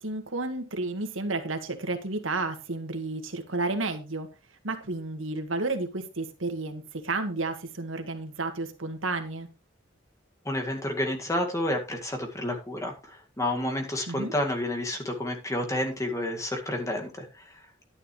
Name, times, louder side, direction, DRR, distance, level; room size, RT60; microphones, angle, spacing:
voice 1, 0.0-4.3 4.6-9.5 14.1-14.3, right 2 dB, 85° right, 7 dB, 1.8 m, -31 dB
voice 2, 10.4-17.7, left 1 dB, 15° left, 3 dB, 2.0 m, -30 dB
11.0 x 10.0 x 3.2 m, 0.29 s
head